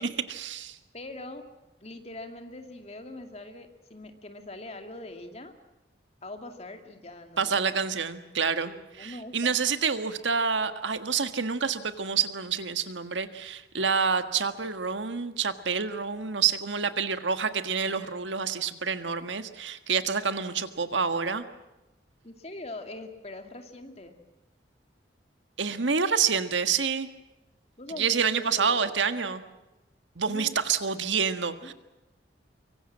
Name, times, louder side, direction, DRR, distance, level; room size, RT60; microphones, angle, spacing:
voice 1, 0.0-0.8 7.4-21.4 25.6-27.1 28.0-29.4 30.2-31.7, right 6 dB, 85° right, 10 dB, 1.6 m, -28 dB
voice 2, 0.9-1.4 1.8-5.6 6.2-7.6 8.6-9.6 22.2-24.2 27.8-29.3 30.3-30.5 31.6-31.7, left 2 dB, 35° left, 6 dB, 2.4 m, -42 dB
24.5 x 24.0 x 7.5 m, 1.0 s
head